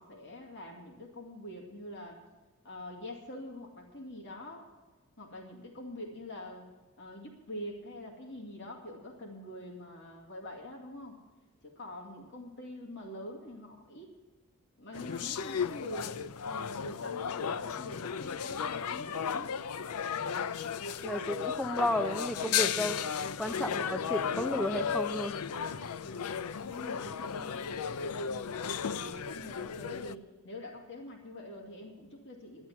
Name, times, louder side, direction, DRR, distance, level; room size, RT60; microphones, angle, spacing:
voice 1, 0.0-2.2 2.6-4.6 5.2-6.7 7.0-11.2 11.6-14.1 14.8-16.2 16.4-19.6 26.0-27.7 28.2-32.7, left 1 dB, 55° left, 0 dB, 2.3 m, -45 dB
sound 1, 14.9-30.2, left 7 dB, 85° left, 0.5 m, -35 dB
voice 2, 21.0-23.0 23.4-25.4, equal, 5° left, 6 dB, 0.6 m, -33 dB
12.5 x 11.0 x 7.2 m, 1.2 s
head